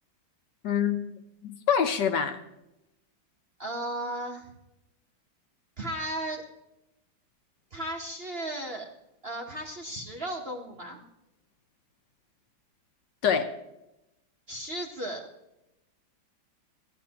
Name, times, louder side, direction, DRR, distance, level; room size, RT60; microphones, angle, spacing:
voice 1, 0.6-1.1 1.4-2.4 13.2-13.5, left 7 dB, 70° left, 7 dB, 1.3 m, -25 dB
voice 2, 3.6-4.5 5.8-6.4 7.7-8.9 9.2-11.0 14.5-15.2, right 1 dB, 40° right, 0 dB, 1.0 m, -35 dB
15.5 x 12.0 x 2.9 m, 0.91 s
omnidirectional pair, 2.1 m